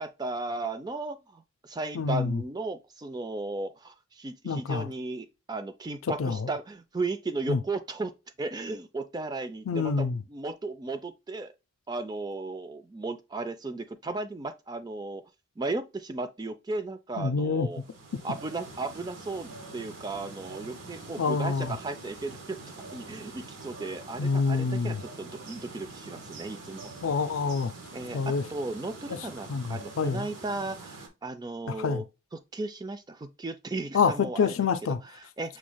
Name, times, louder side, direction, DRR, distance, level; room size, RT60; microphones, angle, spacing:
voice 1, 0.0-8.1 8.4-11.5 11.9-15.2 15.6-17.8 18.2-22.6 22.9-26.9 27.9-32.0 32.3-34.5 35.0-35.6, right 3 dB, 20° right, 0.3 m, -35 dB
voice 2, 2.0-2.4 4.4-4.9 6.2-6.5 7.5-7.6 9.7-10.2 17.2-17.7 21.2-21.7 24.2-25.0 27.0-27.7 28.1-28.4 29.5-30.3 31.7-32.0 33.9-35.0, left 5 dB, 75° left, 0.4 m, -27 dB
sound 1, 17.7-31.1, right 3 dB, 65° right, 1.1 m, -45 dB
6.1 x 3.2 x 2.2 m
head